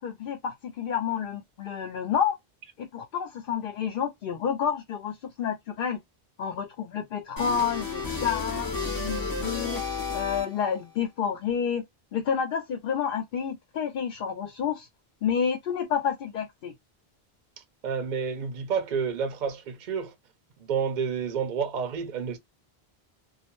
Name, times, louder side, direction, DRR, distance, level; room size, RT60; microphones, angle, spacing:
voice 1, 0.0-2.4 2.8-6.0 6.4-9.8 10.1-11.8 12.1-14.9 15.2-16.7, left 7 dB, 65° left, 0.7 m, -29 dB
sound 1, 7.4-10.8, left 4 dB, 25° left, 0.6 m, -32 dB
voice 2, 17.8-20.1 20.6-22.4, right 6 dB, 55° right, 0.6 m, -29 dB
2.3 x 2.1 x 2.9 m
omnidirectional pair, 1.0 m